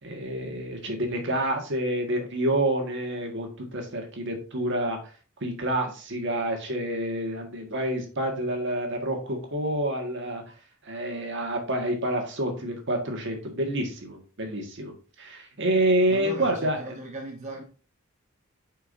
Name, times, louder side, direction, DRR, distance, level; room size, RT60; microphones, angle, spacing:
voice 1, 0.0-5.0 5.4-10.4 10.8-16.9, right 1 dB, 60° right, 1.6 m, -28 dB
voice 2, 16.1-17.6, right 2 dB, 35° right, 0.9 m, -38 dB
8.9 x 4.7 x 2.6 m
head